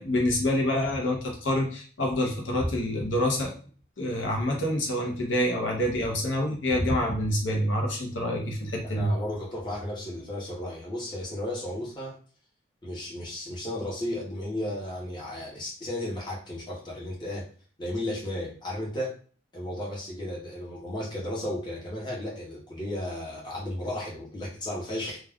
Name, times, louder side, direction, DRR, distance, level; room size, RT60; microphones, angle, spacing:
voice 1, 0.0-3.5 4.0-9.1, left 1 dB, 70° left, 0 dB, 0.7 m, -27 dB
voice 2, 8.8-12.2 12.8-17.4 17.8-19.1 19.5-25.2, left 1 dB, 25° left, -4 dB, 0.8 m, -34 dB
2.3 x 2.3 x 3.5 m, 0.42 s
head